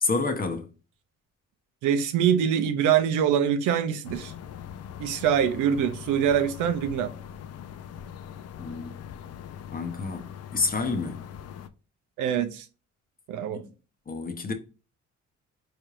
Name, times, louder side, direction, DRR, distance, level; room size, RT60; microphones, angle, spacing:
voice 1, 0.0-0.7 8.6-9.0 9.7-11.2 13.5-13.7 14.1-14.5, left 4 dB, 30° left, 0.8 m, -29 dB
voice 2, 1.8-4.3 5.0-7.1 12.2-12.7 13.3-13.6, right 9 dB, 90° right, 0.5 m, -24 dB
sound 1, 4.0-11.7, left 9 dB, 55° left, 0.5 m, -42 dB
4.2 x 3.3 x 2.4 m
cardioid pair, 90°, 30 cm